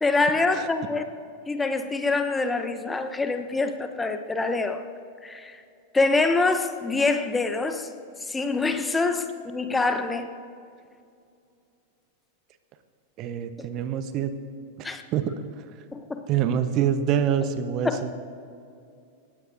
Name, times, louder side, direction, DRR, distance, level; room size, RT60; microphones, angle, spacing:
voice 1, 0.0-1.0 1.5-4.8 5.2-5.6 5.9-7.9 8.2-10.3 13.6-13.7 14.8-15.0 15.9-16.2 17.8-18.1, left 3 dB, 10° left, 8 dB, 0.9 m, -25 dB
voice 2, 13.2-14.3 15.1-15.3 16.3-17.9, right 9 dB, 35° right, 11 dB, 0.9 m, -25 dB
29.5 x 16.0 x 2.6 m, 2.5 s
figure-of-eight pair, 90°, 0 cm